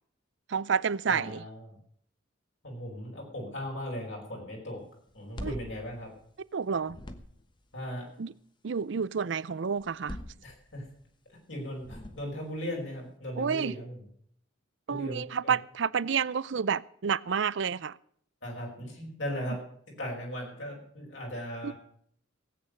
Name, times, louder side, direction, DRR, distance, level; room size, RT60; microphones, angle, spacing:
voice 1, 0.5-1.4 5.4-5.5 6.5-7.0 8.2-8.3 8.6-10.2 13.4-13.7 14.9-18.0 21.6-21.7, right 6 dB, 65° right, 0.5 m, -29 dB
voice 2, 1.1-1.7 2.6-4.8 5.1-6.1 7.7-8.1 10.4-10.8 11.3-14.0 14.9-15.5 18.4-19.6 19.9-21.7, equal, 65° left, 5.5 m, -38 dB
sound 1, 5.1-6.5 6.8-7.6 9.8-11.0 11.7-12.6, equal, 25° left, 1.1 m, -43 dB
17.0 x 8.8 x 6.6 m
head